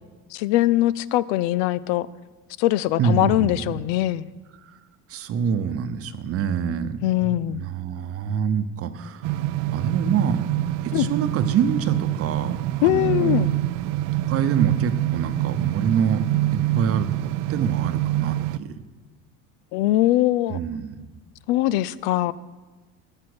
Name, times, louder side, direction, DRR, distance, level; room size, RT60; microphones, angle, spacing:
voice 1, 0.3-2.1 2.6-4.3 7.0-7.7 10.9-11.1 12.8-13.6 19.7-20.6 21.5-22.3, left 15 dB, 90° left, 18 dB, 0.5 m, -21 dB
voice 2, 3.0-3.8 4.7-4.8 5.1-9.4 9.7-10.4 10.8-13.5 14.3-17.1 17.5-18.7 20.5-21.1, right 7 dB, 45° right, 10 dB, 0.8 m, -26 dB
sound 1, 9.2-18.6, right 15 dB, 60° right, 0.5 m, -25 dB
13.5 x 7.6 x 6.2 m, 1.2 s
cardioid pair, 125°, 32 cm